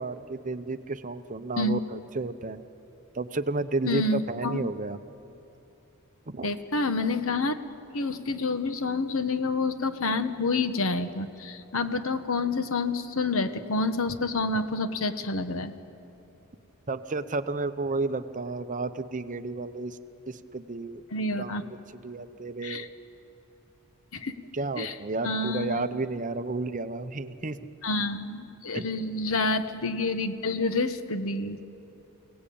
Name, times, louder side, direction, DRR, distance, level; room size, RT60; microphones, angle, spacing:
voice 1, 0.0-2.6 3.1-5.0 6.3-6.5 16.9-20.0 20.3-21.0 21.4-21.8 22.0-22.9 24.5-27.6 28.7-28.9, right 3 dB, 35° right, 11 dB, 0.7 m, -32 dB
voice 2, 3.8-4.6 6.4-7.6 7.9-15.7 21.1-21.6 22.6-22.9 24.1-24.3 24.8-24.9 25.2-25.9 27.8-31.6, left 3 dB, 65° left, 9 dB, 1.2 m, -28 dB
27.5 x 18.0 x 8.6 m, 2.9 s
head